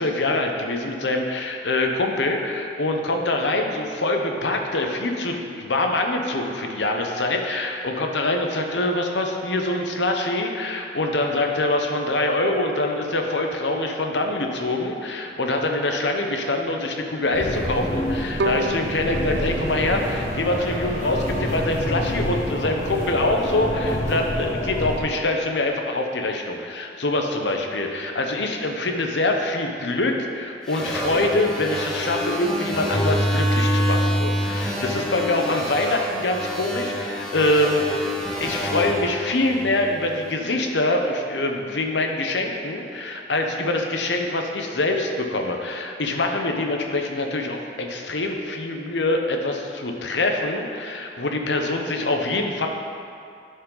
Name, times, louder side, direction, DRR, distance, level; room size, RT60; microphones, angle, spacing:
voice 1, 0.0-38.1 38.4-52.7, left 2 dB, 85° left, 3 dB, 0.9 m, -24 dB
sound 1, 17.3-25.0, equal, 45° left, 1.9 m, -28 dB
Bowed string instrument, 18.4-21.5, right 2 dB, 80° right, 0.5 m, -31 dB
sound 2, 30.7-40.1, equal, 5° left, 1.0 m, -26 dB
12.0 x 5.4 x 3.9 m, 2.5 s
head